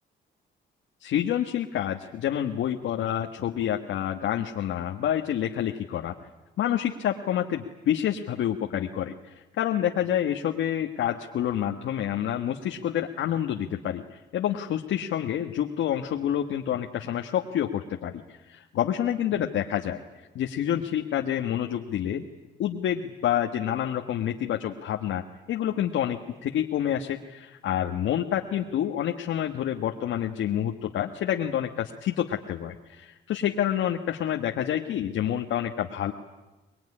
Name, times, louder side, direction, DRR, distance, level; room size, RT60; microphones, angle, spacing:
voice 1, 1.0-6.1 6.6-20.0 20.3-22.2 22.6-25.2 25.5-36.1, left 10 dB, 75° left, 3 dB, 1.5 m, -28 dB
24.5 x 21.0 x 9.9 m, 1.1 s
cardioid pair, 90°, 20 cm